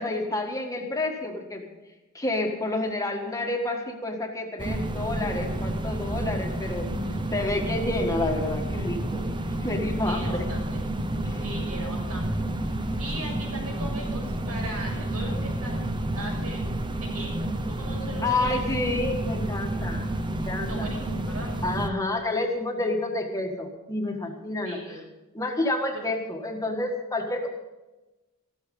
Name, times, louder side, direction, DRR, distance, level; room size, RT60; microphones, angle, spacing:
voice 1, 0.0-1.7 2.1-6.9 7.3-9.2 9.6-10.5 11.2-11.4 18.2-20.9 21.6-24.8 25.3-27.5, left 2 dB, 15° left, 2 dB, 1.6 m, -29 dB
sound 1, 4.6-21.9, right 1 dB, 20° right, 0.9 m, -30 dB
voice 2, 6.9-7.3 10.1-10.8 11.4-12.3 12.7-15.8 16.1-18.6 20.7-21.5 24.6-25.0 25.9-26.0, right 1 dB, 90° right, -1 dB, 6.9 m, -39 dB
14.5 x 13.5 x 5.4 m, 1.1 s
head